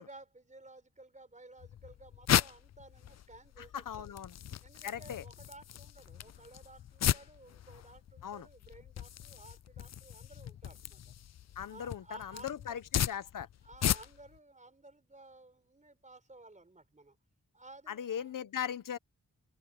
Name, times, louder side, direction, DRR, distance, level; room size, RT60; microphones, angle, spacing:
voice 1, 0.0-4.2 4.6-11.1 11.7-12.8 13.6-17.2 17.5-18.3, right 2 dB, 25° right, 4.4 m, -55 dB
sound 1, 1.6-14.4, left 10 dB, 55° left, 0.4 m, -36 dB
voice 2, 3.9-4.3 4.8-5.2 8.2-8.5 11.6-13.5 17.9-19.0, left 9 dB, 85° left, 0.9 m, -39 dB
wide cardioid pair, 90°, 32 cm